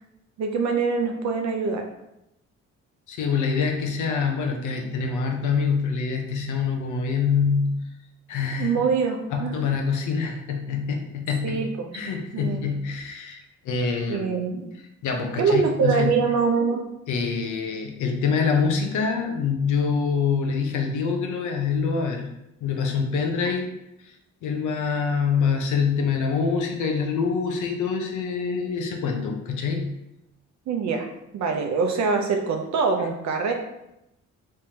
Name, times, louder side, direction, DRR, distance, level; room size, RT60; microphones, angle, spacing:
voice 1, 0.4-1.9 8.6-9.5 11.4-11.9 12.3-12.7 14.1-14.7 15.4-16.8 30.7-31.1 31.3-33.5, right 5 dB, 65° right, 4 dB, 0.6 m, -24 dB
voice 2, 3.1-7.8 8.3-8.7 9.3-11.7 11.9-13.4 13.6-14.3 15.0-16.1 17.1-22.3 22.6-23.7 24.0-24.1 24.4-29.9, left 5 dB, 80° left, 3 dB, 0.7 m, -25 dB
3.5 x 3.3 x 2.8 m, 0.87 s
cardioid pair, 90°, 30 cm